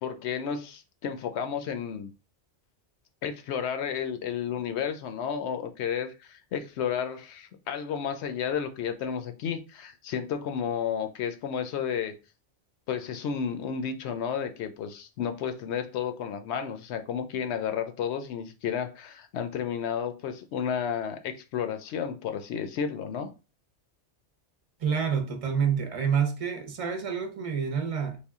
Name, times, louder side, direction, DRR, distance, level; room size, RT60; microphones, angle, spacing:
voice 1, 0.0-2.1 3.2-12.1 12.9-23.3, left 7 dB, 70° left, 0.8 m, -32 dB
voice 2, 24.8-28.2, right 7 dB, 40° right, 0.6 m, -28 dB
3.5 x 2.2 x 3.5 m
omnidirectional pair, 1.2 m